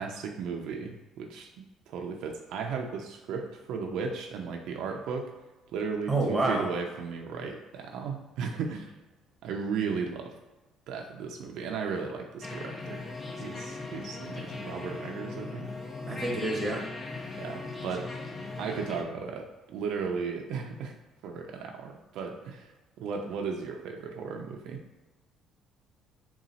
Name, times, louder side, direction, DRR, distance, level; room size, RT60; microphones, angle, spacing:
voice 1, 0.0-5.3 5.7-8.9 9.4-10.3 10.9-13.0 13.4-15.7 17.4-18.3 18.6-21.0 21.2-22.7 23.0-24.8, right 5 dB, 70° right, 2 dB, 0.5 m, -35 dB
voice 2, 6.1-6.6 16.1-16.8, right 2 dB, 10° right, -1 dB, 0.9 m, -28 dB
sound 1, 12.4-19.0, left 3 dB, 25° left, 0.5 m, -39 dB
4.0 x 2.4 x 4.0 m, 1.1 s
cardioid pair, 135°, 0 cm